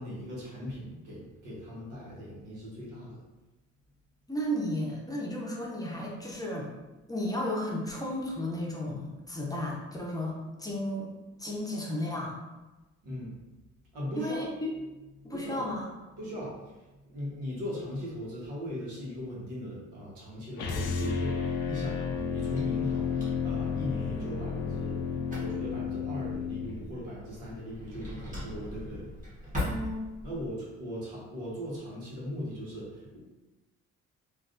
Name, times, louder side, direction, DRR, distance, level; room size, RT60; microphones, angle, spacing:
voice 1, 0.0-3.2 13.0-13.3 13.9-14.4 15.2-15.6 16.2-25.0 25.4-29.1 30.2-33.2, equal, 85° right, -6 dB, 1.3 m, -39 dB
voice 2, 4.3-6.7 7.1-10.3 10.6-11.1 11.4-12.3 14.2-14.7 15.2-15.9 29.7-30.0, left 1 dB, 10° left, -3 dB, 0.6 m, -33 dB
sound 1, 20.6-26.7, left 6 dB, 85° left, 0.6 m, -32 dB
Drawer open or close, 22.3-30.5, left 1 dB, 25° right, 1.2 m, -42 dB
3.3 x 2.5 x 2.5 m, 1.1 s
cardioid pair, 90°, 30 cm